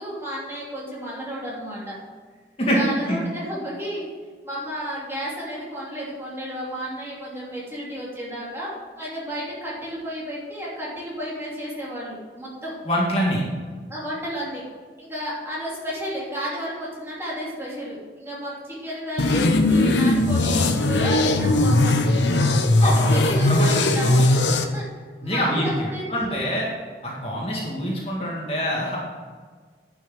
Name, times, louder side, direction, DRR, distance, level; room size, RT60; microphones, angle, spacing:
voice 1, 0.0-2.0 2.7-4.1 4.4-12.8 13.9-14.6 15.0-22.0 22.7-24.9 25.2-26.4, equal, 15° right, -7 dB, 3.0 m, -32 dB
voice 2, 2.6-3.2 12.9-13.4 22.8-24.4 25.2-26.7 27.0-29.0, equal, 35° left, -4 dB, 1.9 m, -25 dB
sound 1, 19.2-24.6, left 2 dB, 85° left, 0.9 m, -19 dB
10.5 x 6.3 x 6.3 m, 1.5 s
head